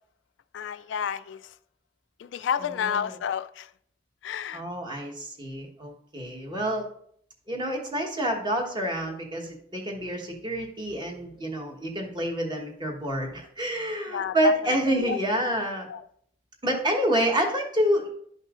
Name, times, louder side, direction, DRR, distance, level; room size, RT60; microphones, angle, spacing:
voice 1, 0.5-1.5 2.2-3.7 4.2-4.6 14.1-15.2 15.9-16.0, left 8 dB, 75° left, 0.3 m, -31 dB
voice 2, 2.6-3.2 4.5-6.9 7.5-15.9 16.6-18.1, equal, 25° right, 1.2 m, -28 dB
11.0 x 5.4 x 2.5 m
head